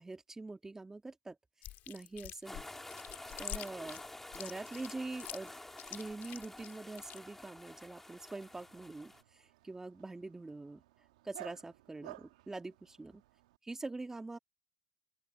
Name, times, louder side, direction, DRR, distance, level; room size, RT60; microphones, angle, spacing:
voice 1, 0.0-1.4 1.9-2.7 3.4-4.0 4.3-5.5 5.9-10.8 11.2-13.2 13.6-14.4, right 3 dB, 15° right, 2.1 m, -44 dB
Chewing mastication, 1.6-7.2, left 15 dB, 60° left, 3.9 m, -46 dB
sound 1, 2.4-9.2, left 1 dB, 10° left, 2.7 m, -50 dB
Dog, 8.2-13.6, right 18 dB, 85° right, 1.6 m, -55 dB
open air
supercardioid pair, 90°, 4 cm